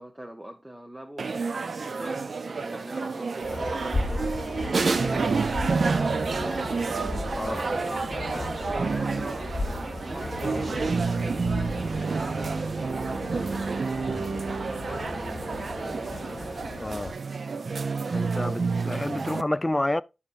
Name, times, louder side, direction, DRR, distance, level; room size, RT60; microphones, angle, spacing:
voice 1, 0.0-6.8 7.4-16.0 17.4-17.8, right 1 dB, 15° right, 0.8 m, -43 dB
sound 1, 1.2-19.4, right 4 dB, 70° right, 0.4 m, -29 dB
sound 2, 3.4-17.1, left 2 dB, 40° left, 1.1 m, -36 dB
voice 2, 16.8-17.2 18.1-20.0, left 1 dB, 20° left, 0.3 m, -29 dB
10.5 x 5.6 x 2.5 m
cardioid pair, 55°, 0 cm